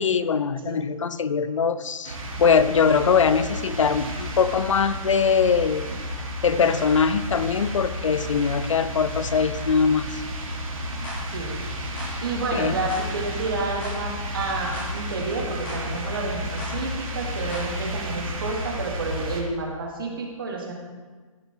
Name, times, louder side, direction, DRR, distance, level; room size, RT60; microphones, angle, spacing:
voice 1, 0.0-5.9 6.4-10.2 12.5-12.8, left 6 dB, 60° left, 14 dB, 0.6 m, -22 dB
sound 1, 2.0-19.4, equal, 75° right, 3.0 m, -32 dB
sound 2, 11.0-11.2 12.0-12.2 12.9-13.1 13.8-14.0 14.7-14.9 15.7-15.8 16.6-16.8 17.5-17.7, left 1 dB, 5° left, 1.1 m, -37 dB
voice 2, 11.3-11.6 12.2-20.7, right 3 dB, 40° right, 0 dB, 1.4 m, -30 dB
15.0 x 5.3 x 4.6 m, 1.4 s
hypercardioid pair, 175°, 18 cm